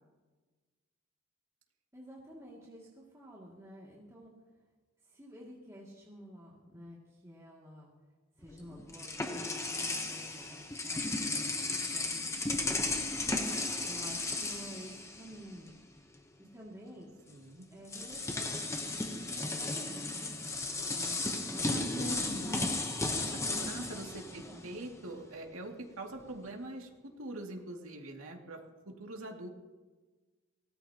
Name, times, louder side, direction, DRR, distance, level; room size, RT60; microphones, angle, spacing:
voice 1, 1.9-4.3 5.0-7.9 8.4-12.9 13.8-15.7 16.5-17.2 17.7-20.3 21.0-21.2 21.4-22.8 23.9-24.6, equal, 15° right, -5 dB, 2.4 m, -51 dB
sound 1, 8.4-15.7 16.0-16.2 17.3-17.4 17.9-25.0, left 2 dB, 15° left, 1.0 m, -35 dB
voice 2, 17.3-17.7 21.6-22.7 23.2-29.5, right 1 dB, 85° right, 1 dB, 2.4 m, -43 dB
24.0 x 18.0 x 3.0 m, 1.3 s
head